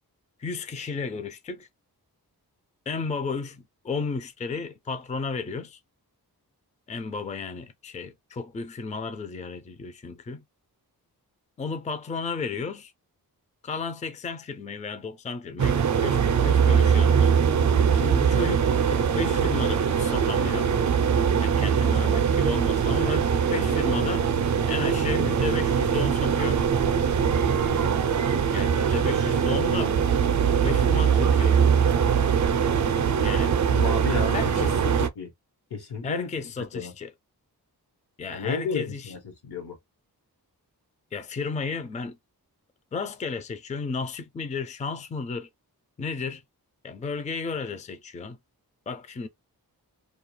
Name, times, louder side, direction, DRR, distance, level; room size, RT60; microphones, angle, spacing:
voice 1, 0.4-1.7 2.9-5.8 6.9-10.4 11.6-12.9 13.6-17.3 17.9-20.7 21.4-24.3 24.7-26.6 28.5-30.0 30.4-31.7 33.2-33.5 34.3-34.8 36.0-37.1 38.2-39.1 41.1-42.2 42.9-45.5 46.0-46.4 46.8-48.4 48.9-49.3, left 4 dB, 20° left, 0.4 m, -33 dB
sound 1, 15.6-35.1, right 7 dB, 50° right, 0.4 m, -22 dB
voice 2, 33.7-34.4 35.0-35.3 35.7-36.3 36.6-36.9 38.3-39.8, left 4 dB, 85° left, 1.1 m, -32 dB
2.3 x 2.2 x 3.0 m
wide cardioid pair, 115°, 38 cm